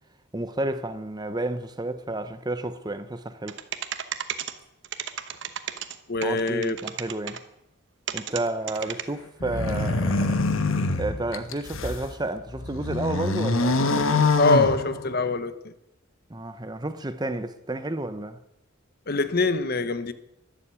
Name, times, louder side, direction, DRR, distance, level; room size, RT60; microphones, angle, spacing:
voice 1, 0.3-3.6 6.2-7.4 8.1-10.4 10.9-13.8 16.3-18.4, right 2 dB, 20° right, 0.7 m, -31 dB
sound 1, 3.5-4.5 4.8-5.9 6.2-7.4 8.1-8.4 8.7-9.0, right 9 dB, 60° right, 1.0 m, -32 dB
voice 2, 6.1-6.8 14.4-15.5 19.1-20.1, left 3 dB, 45° left, 0.9 m, -23 dB
sound 2, 9.4-12.1 12.5-15.4, left 3 dB, 70° left, 1.2 m, -25 dB
12.5 x 11.5 x 8.3 m
head